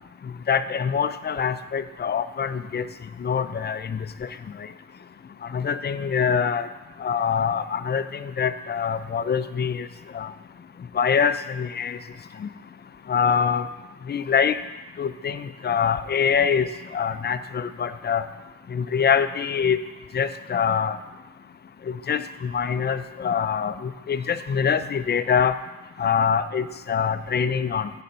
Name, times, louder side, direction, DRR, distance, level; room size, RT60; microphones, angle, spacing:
voice 1, 0.5-2.9 3.2-4.1 5.5-6.7 7.0-9.9 10.1-10.3 10.9-12.0 12.4-12.5 13.1-13.7 14.1-14.6 15.0-16.7 16.9-18.2 18.7-19.8 20.1-21.0 21.9-25.6 26.0-27.9, left 7 dB, 30° left, 12 dB, 0.5 m, -24 dB
8.8 x 4.3 x 5.4 m, 1.1 s
supercardioid pair, 65°, 34 cm